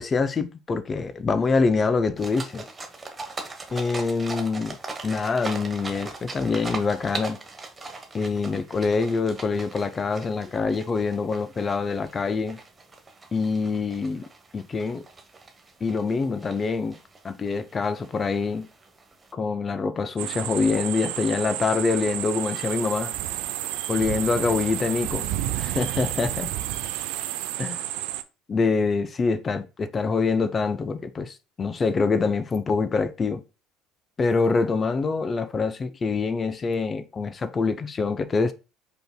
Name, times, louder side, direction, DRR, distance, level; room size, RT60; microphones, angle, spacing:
voice 1, 0.0-2.6 3.7-4.8 5.0-7.4 8.1-12.6 13.3-14.3 14.5-15.0 15.8-17.0 17.2-18.7 19.3-23.1 23.9-25.3 25.6-26.5 27.6-27.8 28.5-33.4 34.2-38.5, left 4 dB, 30° left, 0.5 m, -25 dB
sound 1, 2.2-19.3, right 3 dB, 20° right, 1.1 m, -40 dB
sound 2, 20.2-28.2, right 13 dB, 70° right, 0.4 m, -30 dB
5.1 x 4.5 x 2.2 m
hypercardioid pair, 65°, 0 cm